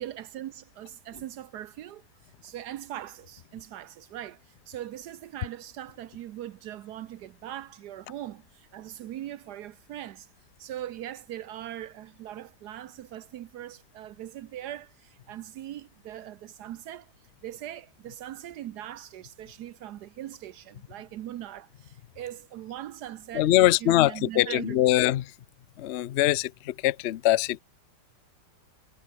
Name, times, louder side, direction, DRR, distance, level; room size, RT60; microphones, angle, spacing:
voice 1, 0.0-10.3 10.6-17.1 17.4-24.8, right 12 dB, 75° right, 1.3 m, -40 dB
voice 2, 23.3-25.3 25.8-27.6, left 14 dB, 65° left, 0.6 m, -23 dB
omnidirectional pair, 1.8 m